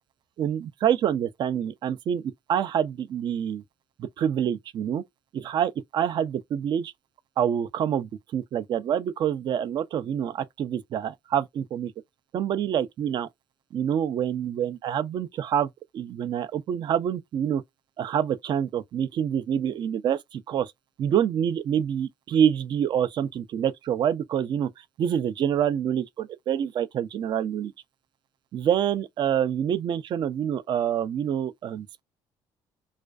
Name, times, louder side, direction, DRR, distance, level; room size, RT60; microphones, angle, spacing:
voice 1, 0.4-2.2 2.5-3.6 4.0-5.0 5.3-6.9 7.4-11.9 12.3-13.3 13.7-15.7 15.9-17.6 18.0-20.7 21.0-24.7 25.0-27.7 28.5-32.0, right 9 dB, 50° right, 0.4 m, -26 dB
2.4 x 2.2 x 2.3 m
supercardioid pair, 85°, 10 cm